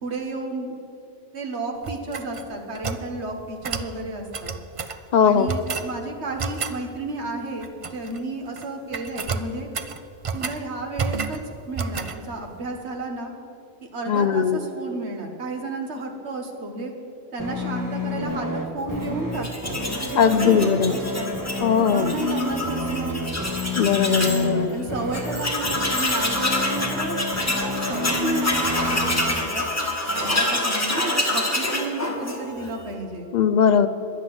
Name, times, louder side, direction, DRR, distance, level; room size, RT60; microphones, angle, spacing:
voice 1, 0.0-0.7 1.3-4.5 5.2-9.7 10.3-11.4 11.7-13.3 13.9-16.9 17.3-21.3 21.8-23.2 24.7-29.6 30.2-33.3, right 2 dB, 65° right, 3 dB, 1.7 m, -32 dB
sound 1, 1.8-3.1 3.6-3.9 4.3-5.0 5.5-5.9 6.4-6.8 7.6-8.2 8.5-8.7 8.9-10.6 11.0-11.4 11.8-12.2, right 5 dB, 45° right, 0.4 m, -30 dB
voice 2, 5.1-5.5 14.1-14.6 20.1-21.0 21.6-22.1 23.8-24.8 33.3-33.9, left 7 dB, 50° left, 11 dB, 0.6 m, -19 dB
sound 2, 17.4-29.4, left 1 dB, 15° right, 1.2 m, -29 dB
Tools, 19.3-24.4 24.8-24.9 25.1-32.7, left 1 dB, 15° left, 1.4 m, -27 dB
11.0 x 9.8 x 7.8 m, 2.7 s
omnidirectional pair, 1.2 m